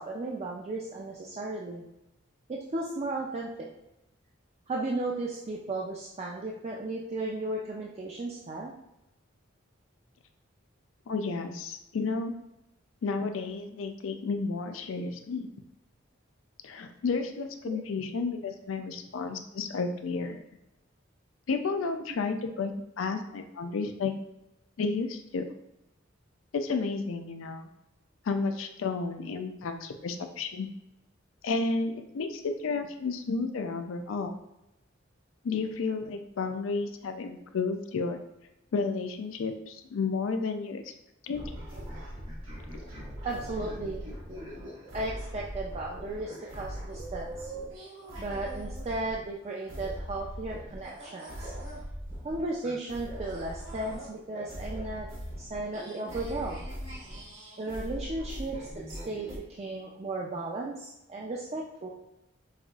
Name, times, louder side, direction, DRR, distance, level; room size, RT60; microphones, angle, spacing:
voice 1, 0.0-1.8 2.5-3.7 4.7-8.7 17.6-17.8 43.2-44.1 44.9-47.5 48.2-51.5 52.2-55.1 55.4-56.7 57.6-61.9, right 2 dB, 30° right, -2 dB, 0.3 m, -35 dB
voice 2, 11.1-12.3 13.0-15.5 16.6-20.4 21.5-22.7 23.0-24.1 24.8-25.5 26.5-27.7 28.3-30.7 31.4-34.3 35.4-38.2 38.7-40.8 41.2-41.4, left 4 dB, 80° left, 7 dB, 0.4 m, -32 dB
sound 1, 41.3-49.3 49.7-59.4, equal, 85° right, 1.4 m, -41 dB
5.5 x 2.4 x 2.4 m, 0.90 s
head